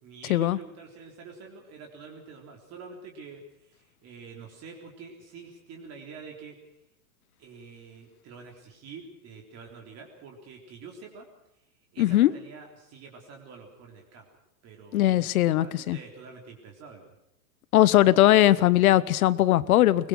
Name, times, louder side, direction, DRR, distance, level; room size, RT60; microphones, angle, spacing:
voice 1, 0.0-6.6 7.4-11.3 11.9-14.3 14.6-17.1, right 5 dB, 35° right, 1 dB, 3.7 m, -46 dB
voice 2, 12.0-12.3 14.9-16.0 17.7-20.1, left 14 dB, 65° left, 19 dB, 1.1 m, -20 dB
22.5 x 21.0 x 6.3 m, 0.85 s
hypercardioid pair, 130°, 47 cm